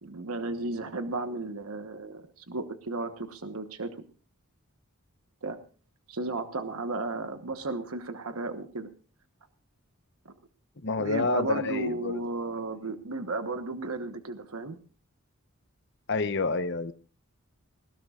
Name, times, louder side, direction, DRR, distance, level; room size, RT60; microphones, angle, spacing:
voice 1, 0.0-3.9 5.4-5.6 6.1-8.9 10.2-10.3 11.0-14.8, right 2 dB, 80° right, 8 dB, 1.2 m, -34 dB
voice 2, 10.8-12.2 16.1-16.9, left 3 dB, 50° left, 11 dB, 1.0 m, -28 dB
20.0 x 16.5 x 2.5 m, 0.37 s
head